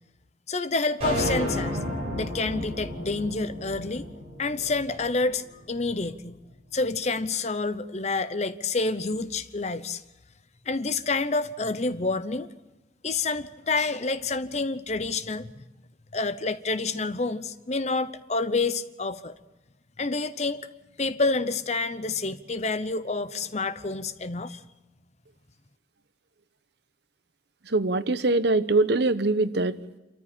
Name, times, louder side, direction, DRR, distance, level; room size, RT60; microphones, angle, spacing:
voice 1, 0.5-1.8 2.1-4.1 4.4-6.4 6.7-10.0 10.7-12.5 13.0-15.6 16.1-19.3 20.0-20.6 21.0-24.6, left 3 dB, 35° left, 13 dB, 0.8 m, -28 dB
sound 1, 1.0-5.4, equal, 30° right, 7.8 m, -32 dB
voice 2, 27.7-29.8, right 2 dB, 60° right, 13 dB, 0.9 m, -23 dB
27.0 x 14.0 x 8.9 m, 1.1 s
head